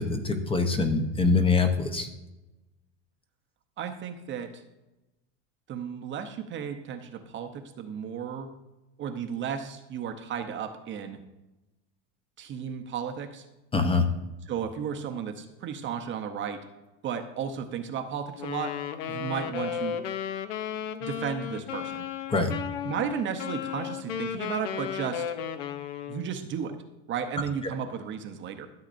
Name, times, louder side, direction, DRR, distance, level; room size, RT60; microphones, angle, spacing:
voice 1, 0.0-2.1 13.7-14.1 22.3-22.5, left 4 dB, 15° left, 5 dB, 0.7 m, -24 dB
voice 2, 3.8-4.6 5.7-8.5 9.0-11.2 12.4-13.4 14.5-16.6 17.0-18.8 19.1-20.0 21.0-22.0 22.9-25.3 26.1-26.8 27.1-28.7, right 7 dB, 35° right, 6 dB, 0.7 m, -34 dB
Wind instrument woodwind instrument, 18.3-26.3, left 9 dB, 85° left, 0.8 m, -34 dB
13.5 x 7.8 x 2.6 m, 1.0 s
supercardioid pair, 135°, 36 cm